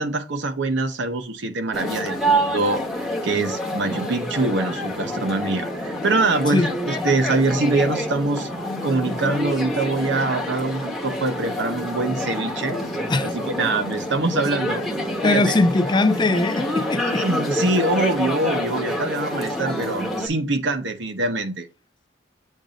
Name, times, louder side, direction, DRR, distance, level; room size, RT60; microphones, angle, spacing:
voice 1, 0.0-8.5 8.8-12.8 13.2-14.8 15.2-15.6 17.1-21.7, right 2 dB, 65° right, 0.9 m, -24 dB
sound 1, 1.7-20.3, equal, ahead, 1.0 m, -27 dB
voice 2, 15.2-17.2, left 2 dB, 25° left, 0.4 m, -20 dB
7.3 x 2.6 x 5.0 m
head